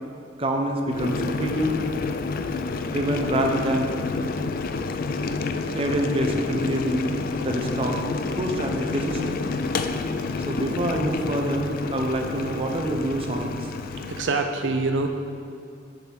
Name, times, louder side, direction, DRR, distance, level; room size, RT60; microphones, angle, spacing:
voice 1, 0.4-1.8 2.9-3.9 5.7-7.1 7.4-8.0 8.4-9.4 10.4-13.7, right 1 dB, 30° right, 2 dB, 0.7 m, -26 dB
Boiling, 0.9-14.4, left 4 dB, 50° left, 0.4 m, -29 dB
voice 2, 13.8-15.1, right 3 dB, 85° right, 5 dB, 0.6 m, -25 dB
6.7 x 5.4 x 6.1 m, 2.4 s
head